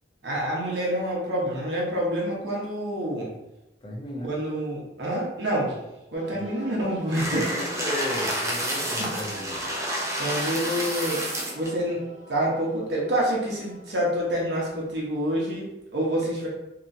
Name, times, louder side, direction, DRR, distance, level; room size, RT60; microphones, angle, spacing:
voice 1, 0.2-3.3 4.2-5.8 6.1-7.5 10.2-11.2 11.5-16.5, right 1 dB, 80° right, -3 dB, 1.0 m, -27 dB
voice 2, 3.8-4.3 6.3-6.5 7.2-9.7, left 1 dB, 30° left, -2 dB, 0.7 m, -34 dB
sound 1, 6.1-14.1, equal, 90° left, 1.0 m, -43 dB
sound 2, 7.1-11.7, right 1 dB, 15° right, 0.6 m, -29 dB
3.0 x 2.8 x 2.7 m, 0.94 s
head